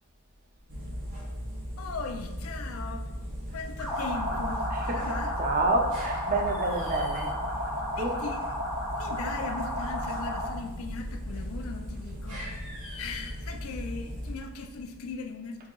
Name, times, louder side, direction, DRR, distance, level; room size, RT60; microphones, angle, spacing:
sound 1, 0.7-15.1, equal, 75° right, 1.3 m, -38 dB
voice 1, 1.8-3.1 3.5-5.4 8.0-8.5 9.0-12.6 13.0-15.7, left 4 dB, 65° left, 4 dB, 0.4 m, -39 dB
sound 2, 3.8-10.6, equal, 5° right, 0.9 m, -33 dB
voice 2, 5.4-7.4 8.0-8.2, right 2 dB, 40° right, 3 dB, 0.4 m, -28 dB
4.5 x 2.9 x 2.3 m, 1.0 s
head